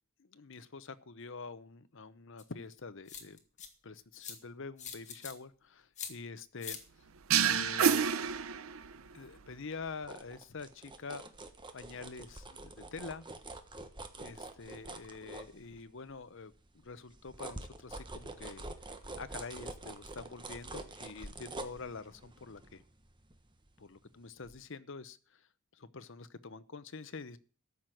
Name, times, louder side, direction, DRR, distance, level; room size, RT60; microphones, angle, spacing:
voice 1, 0.2-3.4 3.8-6.8 7.4-8.1 9.1-11.3 11.7-13.3 14.2-16.5 16.8-18.7 19.1-22.8 23.8-25.2 25.7-27.4, left 4 dB, 60° left, 14 dB, 0.9 m, -46 dB
sound 1, 2.4-2.5 3.1-3.7 4.2-4.4 4.8-5.3 6.0-6.1 6.6-6.8, left 7 dB, 35° left, 2.0 m, -43 dB
sound 2, 7.3-9.1, right 7 dB, 75° right, 0.7 m, -28 dB
sound 3, 9.8-16.1 16.5-24.1 24.4-24.6, right 2 dB, 20° right, 1.3 m, -47 dB
13.5 x 6.1 x 9.2 m, 0.40 s
head